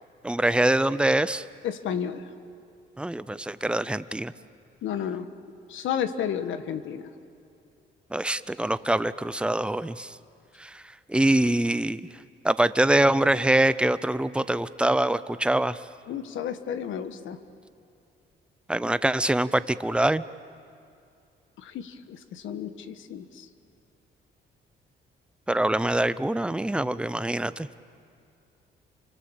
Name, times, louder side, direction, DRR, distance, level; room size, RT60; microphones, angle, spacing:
voice 1, 0.2-1.4 3.0-4.3 8.1-10.2 10.6-12.0 12.4-15.9 18.7-20.2 25.5-27.7, right 1 dB, 5° right, 15 dB, 0.7 m, -24 dB
voice 2, 1.6-2.2 4.8-5.3 5.7-7.1 16.1-17.4 21.6-23.5, left 8 dB, 80° left, 10 dB, 1.4 m, -32 dB
28.5 x 25.0 x 7.2 m, 2.5 s
cardioid pair, 90°, 20 cm